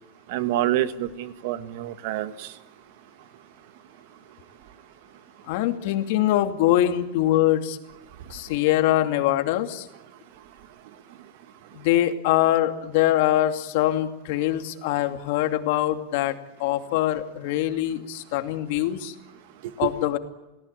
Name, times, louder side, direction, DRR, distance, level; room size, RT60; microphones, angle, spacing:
voice 1, 0.3-2.5 19.6-19.9, right 13 dB, 55° right, 1.7 m, -27 dB
voice 2, 5.5-7.8 8.3-9.9 11.7-16.3 16.6-19.1 19.8-20.2, left 13 dB, 55° left, 2.5 m, -23 dB
29.5 x 18.5 x 8.9 m
supercardioid pair, 170°, 0 cm